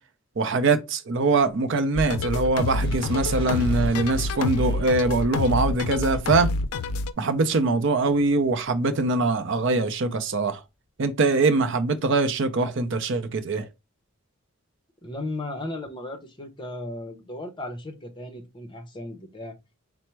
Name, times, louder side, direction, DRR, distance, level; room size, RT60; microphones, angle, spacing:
voice 1, 0.4-6.5 7.2-10.6 11.0-13.7, right 3 dB, 55° right, 0.5 m, -23 dB
sound 1, 2.0-7.1, left 3 dB, 85° left, 0.4 m, -27 dB
Fire, 2.5-8.8 9.5-9.6, left 1 dB, 25° right, 1.8 m, -42 dB
voice 2, 15.0-19.5, left 1 dB, 20° left, 0.7 m, -35 dB
4.3 x 2.0 x 4.4 m
head